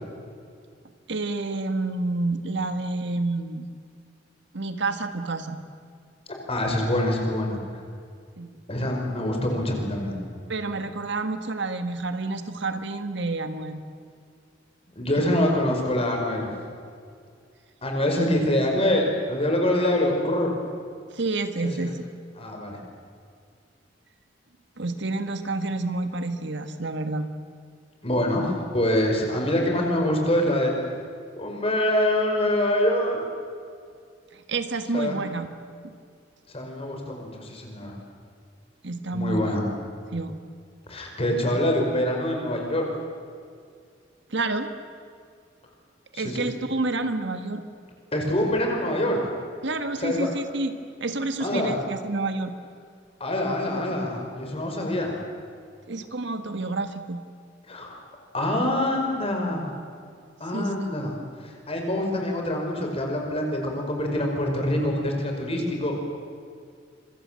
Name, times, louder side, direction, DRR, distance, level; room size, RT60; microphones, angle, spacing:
voice 1, 1.1-3.7 4.5-5.6 8.4-8.6 10.5-13.8 15.2-15.4 21.1-22.1 24.8-27.3 34.3-35.5 35.8-35.9 38.8-39.6 40.1-40.4 44.3-44.7 46.1-47.7 49.6-50.7 51.0-52.5 55.9-57.2 60.5-60.9, right 2 dB, 65° right, 8 dB, 1.7 m, -29 dB
voice 2, 6.5-7.6 8.7-10.2 15.0-16.5 17.8-20.5 21.6-21.9 22.4-22.8 28.0-30.9 31.4-33.3 34.9-35.2 36.5-37.9 39.1-39.6 40.9-42.9 46.1-46.5 48.1-49.3 50.0-50.3 51.4-51.8 53.2-55.2 57.7-58.0 58.3-59.7 60.4-66.0, left 1 dB, 30° left, 2 dB, 5.5 m, -25 dB
26.5 x 24.0 x 7.7 m, 2.2 s
head